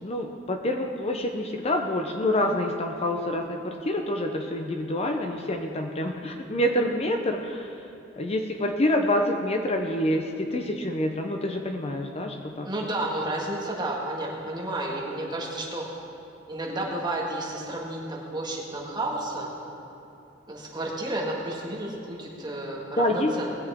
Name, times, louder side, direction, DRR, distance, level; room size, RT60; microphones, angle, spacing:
voice 1, 0.0-7.8 8.2-12.7 23.0-23.3, left 1 dB, 30° left, 3 dB, 0.6 m, -27 dB
voice 2, 12.6-15.8 16.5-19.5 20.5-23.6, right 1 dB, 25° right, -3 dB, 1.8 m, -31 dB
19.0 x 8.1 x 3.6 m, 2.8 s
head